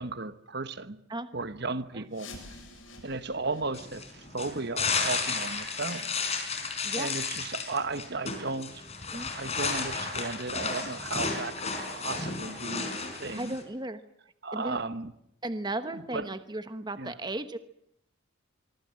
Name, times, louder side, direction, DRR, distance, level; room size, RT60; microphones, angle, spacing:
voice 1, 0.0-1.0 1.3-2.3 3.0-6.1 7.0-8.9 9.1-13.6 14.4-15.1 15.9-16.3 17.0-17.1, right 3 dB, 50° right, 1.2 m, -35 dB
sound 1, 2.1-7.7 8.0-8.1 8.7-8.8 9.4-9.5 10.0-10.1, left 2 dB, 70° left, 7.5 m, -52 dB
sound 2, 3.7-13.6, left 4 dB, 30° left, 5.0 m, -33 dB
voice 2, 6.8-7.2 9.1-9.3 13.3-14.0 14.5-14.8 15.4-17.6, right 2 dB, 20° right, 1.0 m, -35 dB
24.5 x 24.5 x 7.6 m
head